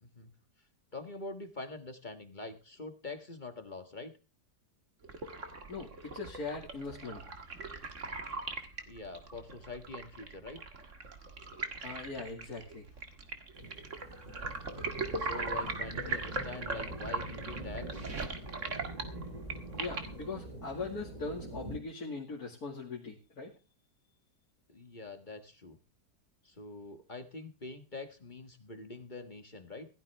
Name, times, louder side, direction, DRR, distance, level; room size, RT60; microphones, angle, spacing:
voice 1, 0.9-4.1 8.9-10.6 14.2-14.6 15.2-18.1 24.7-25.8 26.4-29.9, left 3 dB, 30° left, 7 dB, 1.6 m, -45 dB
sound 1, 5.0-20.3, right 3 dB, 45° right, 2.2 m, -40 dB
voice 2, 5.7-7.3 11.8-12.8 19.8-23.5, left 3 dB, 60° left, -1 dB, 2.8 m, -40 dB
sound 2, 13.5-21.8, right 1 dB, 20° right, 3.7 m, -45 dB
17.0 x 13.5 x 3.5 m, 0.32 s
omnidirectional pair, 1.8 m